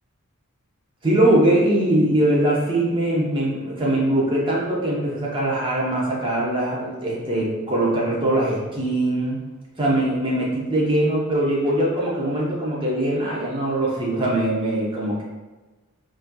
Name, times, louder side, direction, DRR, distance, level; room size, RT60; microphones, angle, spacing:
voice 1, 1.0-9.4 9.8-15.2, right 1 dB, 25° right, -5 dB, 0.7 m, -21 dB
4.1 x 2.5 x 2.3 m, 1.2 s
head